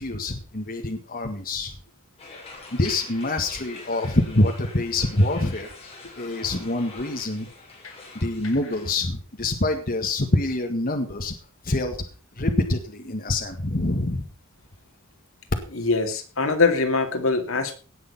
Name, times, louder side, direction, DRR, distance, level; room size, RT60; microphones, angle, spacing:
voice 1, 0.0-1.8 2.7-5.7 6.2-7.5 8.2-11.3 11.6-12.0 12.4-14.3, left 2 dB, 45° left, 3 dB, 1.8 m, -25 dB
sound 1, 2.2-8.9, left 3 dB, 30° left, 5.2 m, -44 dB
voice 2, 15.7-17.8, left 3 dB, 75° left, 5 dB, 2.4 m, -23 dB
18.5 x 6.8 x 5.6 m, 0.39 s
head